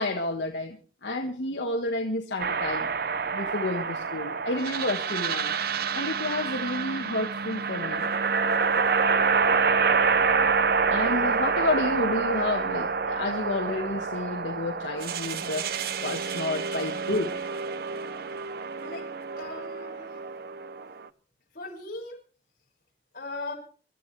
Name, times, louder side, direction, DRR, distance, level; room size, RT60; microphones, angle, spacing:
voice 1, 0.0-2.9 3.3-5.5 5.9-8.1 10.9-15.7 16.0-17.3, left 2 dB, 80° left, 2 dB, 1.5 m, -30 dB
sound 1, 2.4-21.1, right 5 dB, 60° right, 0.7 m, -27 dB
voice 2, 19.4-20.2 21.5-22.2 23.1-23.5, left 2 dB, 55° left, -1 dB, 6.1 m, -38 dB
25.5 x 13.0 x 3.3 m, 0.39 s
head